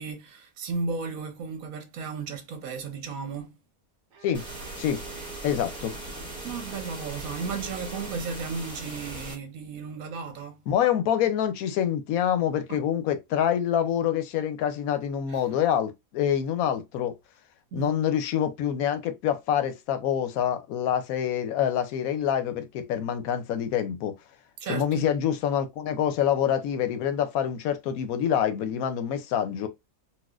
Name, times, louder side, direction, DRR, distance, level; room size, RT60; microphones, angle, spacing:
voice 1, 0.0-3.6 6.4-10.6 12.7-12.8 15.3-15.4 17.7-18.0 24.6-25.1, right 4 dB, 75° right, 1.3 m, -34 dB
Bowed string instrument, 4.1-8.2, right 3 dB, 60° right, 1.0 m, -48 dB
sound 1, 4.3-9.3, right 2 dB, 5° left, 1.1 m, -39 dB
voice 2, 5.4-5.9 10.7-17.1 17.7-24.1 24.7-29.7, left 9 dB, 80° left, 1.1 m, -26 dB
4.1 x 2.4 x 2.4 m
omnidirectional pair, 1.5 m